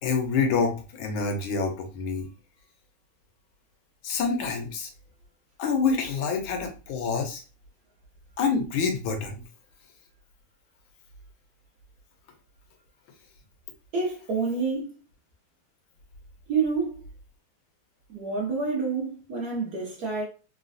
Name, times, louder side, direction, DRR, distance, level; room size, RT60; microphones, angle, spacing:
voice 1, 0.0-2.2 4.0-4.9 5.6-7.4 8.4-9.4, left 5 dB, 75° left, 1.5 m, -27 dB
voice 2, 13.9-15.0 16.5-17.0 18.1-20.2, right 4 dB, 55° right, 1.2 m, -28 dB
4.0 x 2.2 x 2.5 m
omnidirectional pair, 2.3 m